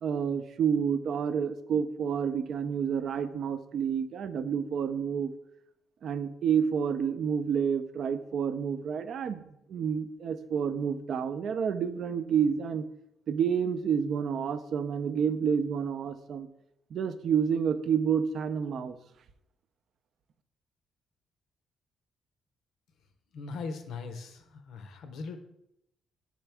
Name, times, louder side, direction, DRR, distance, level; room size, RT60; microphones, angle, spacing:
voice 1, 0.0-5.3 6.0-12.8 13.3-16.5 16.9-19.0, right 7 dB, 65° right, 11 dB, 0.4 m, -29 dB
voice 2, 23.3-25.4, left 4 dB, 75° left, 8 dB, 0.6 m, -39 dB
6.1 x 4.5 x 3.4 m, 0.81 s
cardioid pair, 90°, 0 cm